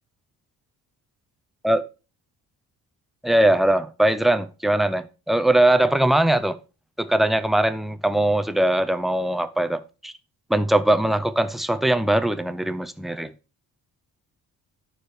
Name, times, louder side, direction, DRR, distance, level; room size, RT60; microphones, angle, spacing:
voice 1, 3.2-6.6 7.0-10.1 10.5-13.3, right 1 dB, ahead, 0.6 m, -21 dB
11.0 x 4.9 x 4.8 m
cardioid pair, 120°, 37 cm